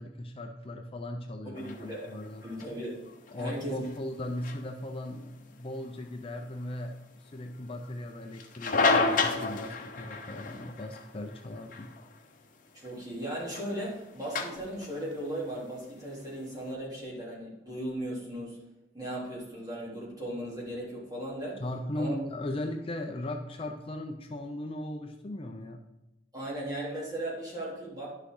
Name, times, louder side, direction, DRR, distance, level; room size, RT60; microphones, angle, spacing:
voice 1, 0.0-2.5 3.3-11.9 21.6-25.8, left 1 dB, 30° left, 4 dB, 0.6 m, -38 dB
sound 1, 1.5-16.7, left 3 dB, 50° left, 0.9 m, -34 dB
voice 2, 1.5-2.1 2.4-3.1 3.3-3.9 12.7-18.6 18.9-21.6 21.9-22.1 26.3-28.1, right 1 dB, 20° right, -6 dB, 3.3 m, -37 dB
11.0 x 6.4 x 3.8 m, 0.96 s
head